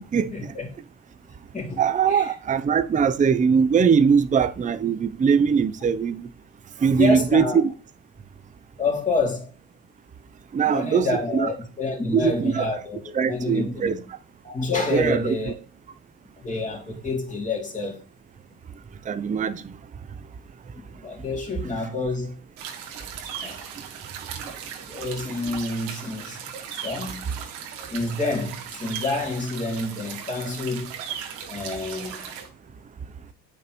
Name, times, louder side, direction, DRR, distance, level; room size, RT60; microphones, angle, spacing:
voice 1, 0.3-0.7 1.5-1.8 2.1-2.3 7.0-7.6 8.8-9.5 10.7-14.0 14.4-15.5 16.4-18.0 21.0-22.4 23.4-23.7 24.9-26.4 26.8-27.2 27.9-30.9 31.5-32.4, left 3 dB, 15° left, 2.8 m, -28 dB
voice 2, 1.8-6.2 6.8-7.7 10.5-11.5 12.1-12.7 13.2-14.0 14.9-15.4 19.1-19.5, right 6 dB, 15° right, 0.5 m, -21 dB
sound 1, 22.6-32.5, right 8 dB, 75° right, 1.7 m, -37 dB
8.5 x 5.0 x 3.0 m
hypercardioid pair, 75°, 48 cm